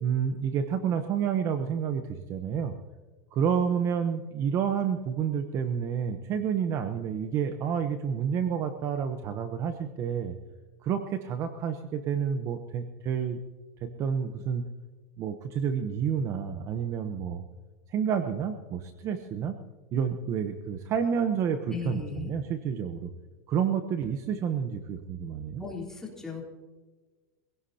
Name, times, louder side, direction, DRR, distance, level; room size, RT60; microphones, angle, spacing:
voice 1, 0.0-2.7 3.3-10.4 10.8-13.4 14.0-14.6 15.2-17.4 17.9-19.6 19.9-23.1 23.5-25.6, right 7 dB, 35° right, 8 dB, 0.9 m, -29 dB
voice 2, 21.7-22.3 25.6-26.4, left 6 dB, 5° left, -3 dB, 3.7 m, -36 dB
24.0 x 17.0 x 2.8 m, 1.3 s
supercardioid pair, 150°, 9 cm